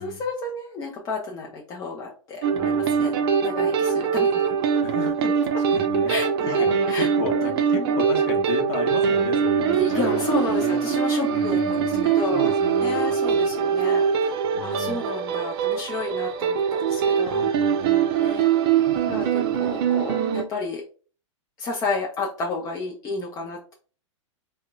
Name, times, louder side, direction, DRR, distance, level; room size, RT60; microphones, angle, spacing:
voice 1, 0.0-3.1 3.4-4.3 6.1-7.9 9.7-17.4 18.2-20.8 21.6-23.7, left 3 dB, 20° left, -1 dB, 0.5 m, -31 dB
sound 1, 2.4-20.4, right 7 dB, 50° right, 0.5 m, -23 dB
voice 2, 2.5-3.1 4.8-13.5 14.5-15.1 17.3-18.1 19.0-19.7, left 5 dB, 40° left, 2 dB, 0.9 m, -35 dB
3.6 x 2.1 x 2.3 m, 0.39 s
figure-of-eight pair, 100°, 17 cm